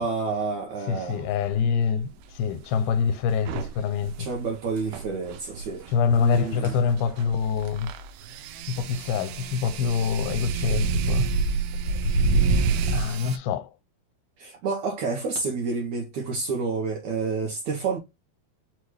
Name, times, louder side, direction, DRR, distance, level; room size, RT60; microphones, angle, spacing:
voice 1, 0.0-1.3 4.2-5.9 6.2-6.8 14.4-18.0, right 4 dB, 75° right, 1.8 m, -29 dB
voice 2, 0.9-4.3 5.9-7.9 8.7-11.3 12.9-13.7, left 6 dB, 85° left, 2.5 m, -25 dB
sound 1, 1.4-1.6 3.3-13.4, right 4 dB, 90° right, 2.6 m, -28 dB
6.1 x 2.3 x 3.2 m
omnidirectional pair, 4.3 m